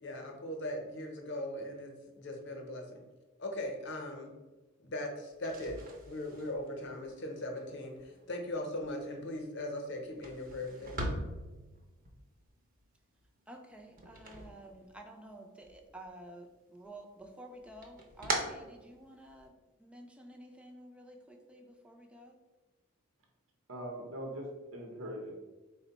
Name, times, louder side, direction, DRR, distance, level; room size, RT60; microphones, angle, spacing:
voice 1, 0.0-3.0 3.4-4.3 4.8-5.8 6.1-11.1, left 1 dB, 60° left, 2 dB, 0.7 m, -39 dB
sound 1, 5.3-15.3 15.6-16.5 16.9-19.5, right 2 dB, 40° right, 0.6 m, -43 dB
voice 2, 13.5-22.4, right 1 dB, 5° right, 2 dB, 0.4 m, -51 dB
voice 3, 23.7-25.3, equal, 80° right, 0 dB, 0.8 m, -41 dB
4.3 x 2.1 x 4.0 m, 1.2 s
head